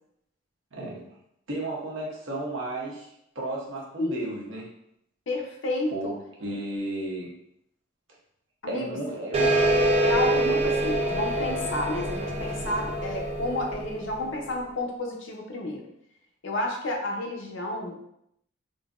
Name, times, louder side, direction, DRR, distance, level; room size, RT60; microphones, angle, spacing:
voice 1, 0.7-1.0 1.5-3.1 3.3-4.7 5.9-7.3 8.7-9.5, right 1 dB, 70° right, -3 dB, 0.8 m, -33 dB
voice 2, 5.3-5.9 8.6-9.0 10.0-15.8 16.4-17.9, left 1 dB, 65° left, 0 dB, 0.6 m, -31 dB
cymb lowgog, 9.3-14.4, right 1 dB, 30° right, 0.4 m, -25 dB
3.8 x 2.0 x 2.4 m, 0.75 s
head